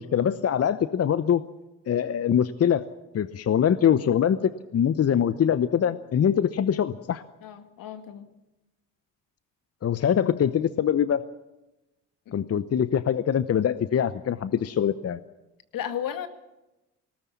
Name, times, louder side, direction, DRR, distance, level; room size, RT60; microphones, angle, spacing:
voice 1, 0.0-1.4 1.9-2.8 3.1-7.2 9.8-11.2 12.3-15.2, left 9 dB, 40° left, 14 dB, 0.9 m, -23 dB
voice 2, 7.4-8.3 15.7-16.3, left 9 dB, 65° left, 8 dB, 2.0 m, -33 dB
19.5 x 18.0 x 8.5 m, 0.98 s
hypercardioid pair, 55°, 36 cm